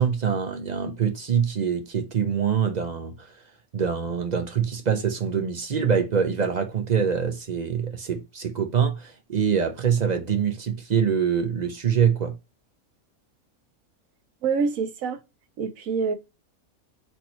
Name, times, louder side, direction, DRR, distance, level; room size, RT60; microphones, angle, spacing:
voice 1, 0.0-3.4 3.7-12.4, right 7 dB, 55° right, 0.5 m, -24 dB
voice 2, 14.4-15.2 15.6-16.1, right 5 dB, 70° right, 1.2 m, -26 dB
4.5 x 2.7 x 4.3 m
omnidirectional pair, 1.5 m